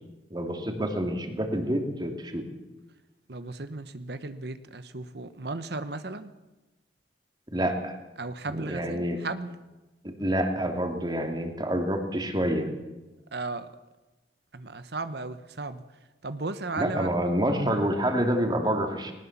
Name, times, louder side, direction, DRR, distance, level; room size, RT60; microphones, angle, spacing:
voice 1, 0.3-2.4 7.5-7.9 8.5-9.2 10.0-12.7 16.8-19.1, equal, 25° right, 5 dB, 2.7 m, -27 dB
voice 2, 3.3-6.3 8.2-9.5 13.3-13.7 14.5-15.8 16.2-17.1, right 3 dB, 65° right, 11 dB, 1.1 m, -35 dB
20.0 x 19.0 x 7.3 m, 1.1 s
head